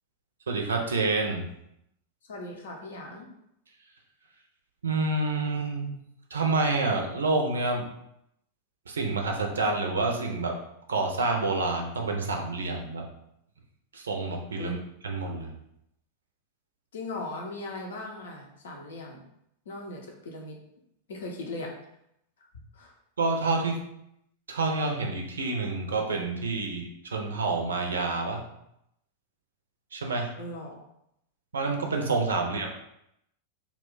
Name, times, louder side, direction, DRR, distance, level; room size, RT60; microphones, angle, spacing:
voice 1, 0.5-1.4 4.8-5.9 6.3-7.8 8.9-10.6 10.9-13.1 13.9-14.8 15.0-15.5 23.2-23.8 24.5-28.4 29.9-30.3 31.5-32.7, right 3 dB, 70° right, 2 dB, 0.5 m, -28 dB
voice 2, 2.3-3.3 14.6-14.8 16.9-19.2 19.7-20.6 21.1-21.7 22.7-22.9 30.4-30.8 32.4-32.6, left 2 dB, 65° left, 0 dB, 0.6 m, -38 dB
2.3 x 2.2 x 3.5 m, 0.78 s
figure-of-eight pair, 90°, 0 cm